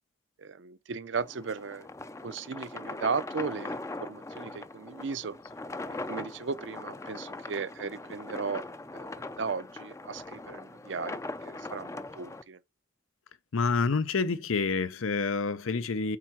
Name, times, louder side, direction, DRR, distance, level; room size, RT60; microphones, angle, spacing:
voice 1, 0.4-1.9 2.2-5.4 5.9-8.6 8.9-12.6, right 5 dB, 65° right, 0.5 m, -36 dB
sound 1, 1.2-12.4, left 2 dB, 15° left, 0.4 m, -41 dB
voice 2, 13.5-16.2, left 4 dB, 85° left, 0.7 m, -28 dB
8.7 x 3.7 x 4.6 m
head